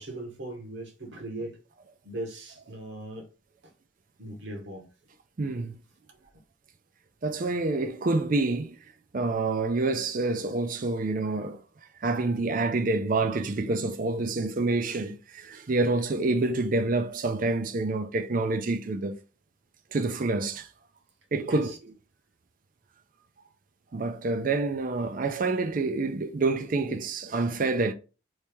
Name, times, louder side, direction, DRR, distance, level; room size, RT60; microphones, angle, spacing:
voice 1, 0.0-1.6 2.0-3.3 3.6-3.7 4.2-4.9 6.1-6.2 21.4-21.8, right 1 dB, 55° right, 1.1 m, -39 dB
voice 2, 5.4-5.7 7.2-8.8 9.1-11.6 12.0-19.2 19.9-20.7 21.3-21.7 23.9-27.9, right 3 dB, 40° right, 0.4 m, -27 dB
3.1 x 2.8 x 3.4 m
head